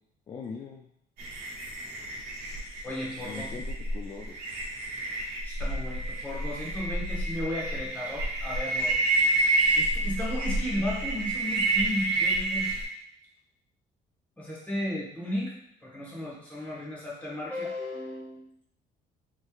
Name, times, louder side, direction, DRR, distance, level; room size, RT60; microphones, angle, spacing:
voice 1, 0.3-0.9 3.2-4.4, left 5 dB, 30° left, 1 dB, 0.3 m, -41 dB
sound 1, 1.2-12.9, right 2 dB, 65° right, 1.2 m, -29 dB
voice 2, 2.8-3.5 5.4-9.0 9.8-12.7 14.4-15.5 15.8-18.7, left 1 dB, 10° left, -6 dB, 1.2 m, -34 dB
3.1 x 3.1 x 2.3 m, 0.75 s
cardioid pair, 110°, 17 cm